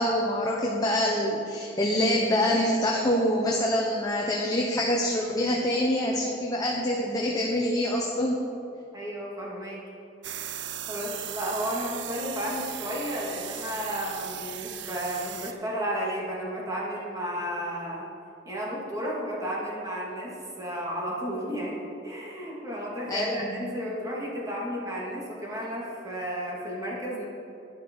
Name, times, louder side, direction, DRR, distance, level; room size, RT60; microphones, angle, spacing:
voice 1, 0.0-8.5 23.1-23.6, left 1 dB, 20° left, -2 dB, 1.1 m, -25 dB
voice 2, 8.9-9.8 10.9-18.0 18.4-27.3, equal, 20° right, -4 dB, 2.6 m, -33 dB
sound 1, 10.2-15.5, right 10 dB, 70° right, 0.6 m, -37 dB
11.5 x 10.5 x 4.8 m, 2.9 s
head